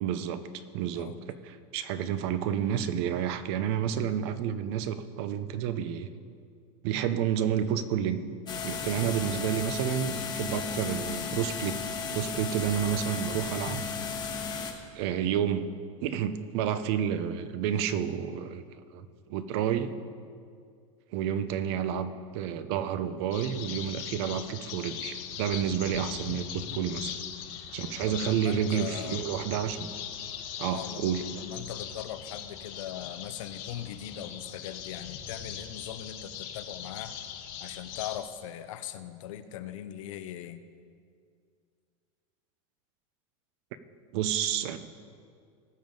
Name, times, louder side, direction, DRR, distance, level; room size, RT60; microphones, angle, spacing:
voice 1, 0.0-6.1 6.8-8.2 8.6-11.8 12.1-13.8 14.9-15.7 16.0-18.6 18.9-19.9 21.1-27.1 27.7-29.9 30.6-31.3 44.1-44.8, right 9 dB, 55° right, 12 dB, 0.7 m, -30 dB
voice 2, 0.9-1.2 27.0-27.2 28.1-29.3 30.6-37.1 37.6-40.6, left 11 dB, 75° left, 11 dB, 0.7 m, -40 dB
sound 1, 8.5-14.7, left 5 dB, 25° left, 1.1 m, -34 dB
sound 2, 23.3-38.2, left 9 dB, 45° left, 1.0 m, -40 dB
18.5 x 7.2 x 3.9 m, 2.2 s
supercardioid pair, 155°, 17 cm